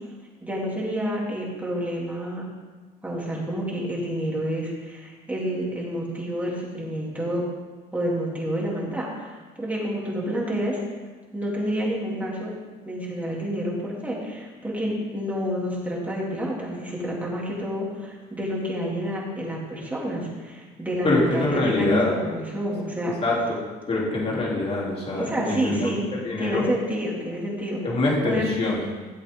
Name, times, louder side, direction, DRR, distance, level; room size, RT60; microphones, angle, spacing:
voice 1, 0.4-2.4 3.0-7.5 7.9-10.8 11.3-12.5 12.8-23.1 25.2-26.0 26.4-27.8 28.2-28.6, equal, 10° right, -5 dB, 3.6 m, -29 dB
voice 2, 21.0-22.2 23.2-23.6 23.9-26.6 27.8-28.9, left 2 dB, 35° left, -5 dB, 3.8 m, -24 dB
15.0 x 7.9 x 4.0 m, 1.4 s
cardioid pair, 110°, 17 cm